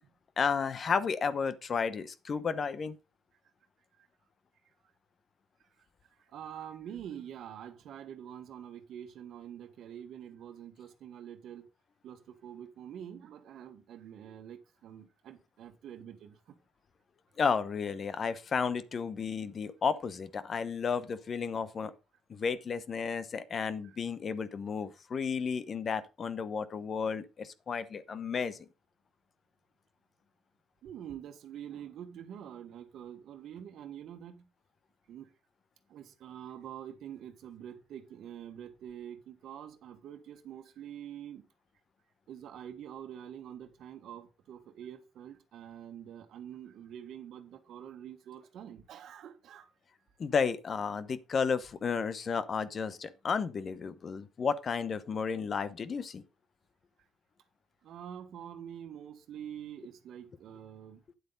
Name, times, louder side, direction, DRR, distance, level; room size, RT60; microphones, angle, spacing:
voice 1, 0.4-3.0 17.4-21.9 22.3-28.7 50.2-56.2, left 5 dB, 45° left, 1.0 m, -32 dB
voice 2, 6.3-11.7 12.0-16.4 23.8-24.0 30.8-34.5 35.1-35.3 35.9-41.4 42.3-49.7 57.8-61.0, right 9 dB, 70° right, 1.4 m, -46 dB
9.6 x 7.9 x 3.9 m
cardioid pair, 85°, 0 cm